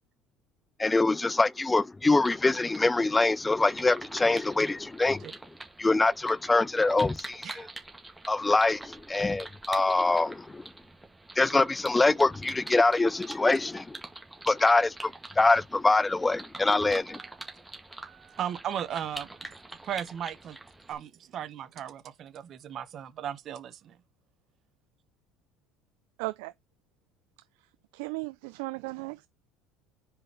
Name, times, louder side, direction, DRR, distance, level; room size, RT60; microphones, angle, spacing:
voice 1, 0.8-5.3 5.8-7.7 8.3-10.7 11.4-14.0 14.5-17.2, left 3 dB, 10° left, 0.3 m, -24 dB
sound 1, 2.2-20.9, right 2 dB, 5° right, 1.9 m, -45 dB
voice 2, 18.1-20.6 20.9-24.0, right 9 dB, 45° right, 1.1 m, -37 dB
voice 3, 26.2-26.5 27.9-29.3, right 24 dB, 85° right, 0.3 m, -36 dB
4.9 x 4.5 x 5.0 m
supercardioid pair, 115°, 0 cm